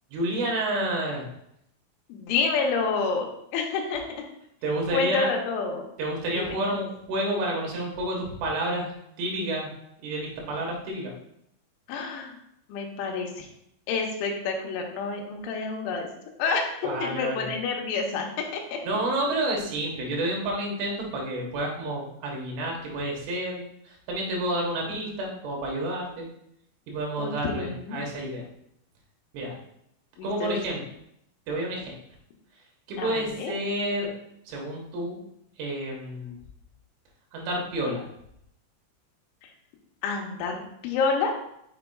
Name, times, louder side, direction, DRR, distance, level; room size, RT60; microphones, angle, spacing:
voice 1, 0.1-1.3 4.6-5.3 6.0-8.9 9.2-9.7 10.0-11.1 16.8-17.6 18.8-26.3 26.9-28.4 29.3-29.6 30.2-30.8 31.5-31.9 32.9-34.1 34.5-35.2 35.6-36.4 37.3-38.0, right 1 dB, 85° right, -1 dB, 3.8 m, -29 dB
voice 2, 2.1-4.2 4.9-5.9 6.4-6.5 11.9-12.4 12.7-13.5 13.9-16.1 16.4-18.3 18.5-18.8 27.2-28.0 30.2-30.6 33.0-33.5 39.4-39.5 40.0-41.3, left 4 dB, 85° left, 1 dB, 3.2 m, -28 dB
6.9 x 6.1 x 2.3 m, 0.76 s
omnidirectional pair, 5.3 m